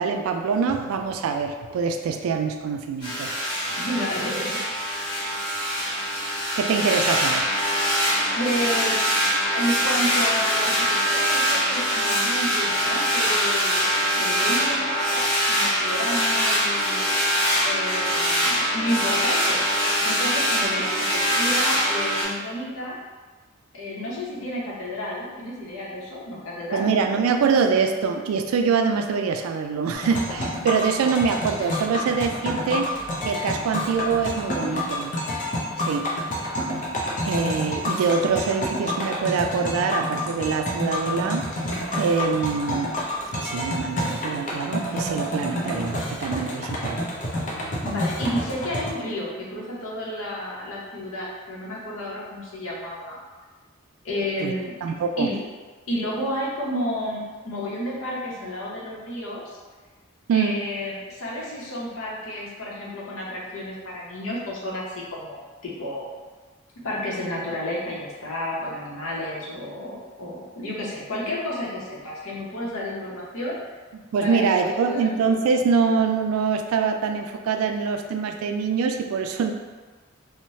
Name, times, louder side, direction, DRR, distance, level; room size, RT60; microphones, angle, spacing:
voice 1, 0.0-3.4 3.7-3.8 6.6-7.5 26.7-32.9 33.2-35.1 35.8-36.1 37.2-41.5 42.0-42.9 43.3-47.1 47.4-47.8 54.4-54.5 54.8-55.3 60.3-60.6 74.1-79.5, right 5 dB, 90° right, 8 dB, 0.3 m, -24 dB
sound 1, 3.0-22.3, equal, 25° left, 1.2 m, -23 dB
voice 2, 3.8-4.6 8.3-9.1 9.5-17.1 17.6-19.7 20.0-23.0 23.7-27.2 46.5-46.6 47.8-53.2 54.0-54.7 55.2-55.4 55.9-59.4 60.3-66.1 66.8-73.6 74.2-75.1 75.4-75.6, equal, 80° left, -4 dB, 0.7 m, -31 dB
sound 2, 29.9-48.9, left 1 dB, 40° left, 0.5 m, -29 dB
3.0 x 2.0 x 2.7 m, 1.4 s
head